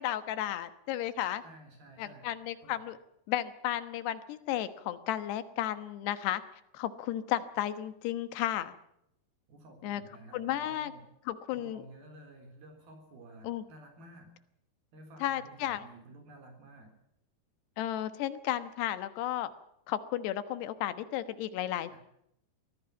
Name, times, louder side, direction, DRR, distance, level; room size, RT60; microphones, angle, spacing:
voice 1, 0.0-1.4 2.0-3.0 3.3-6.4 6.7-8.7 9.8-10.0 10.3-10.9 11.3-11.8 13.4-13.6 15.2-15.8 17.8-19.5 19.9-22.0, left 12 dB, 85° left, 11 dB, 3.3 m, -33 dB
voice 2, 1.4-2.3 2.6-2.8 9.5-11.0 11.5-14.3 14.9-16.9 21.9-22.0, right 2 dB, 65° right, 5 dB, 5.5 m, -52 dB
24.5 x 16.5 x 7.2 m, 0.77 s
omnidirectional pair, 4.7 m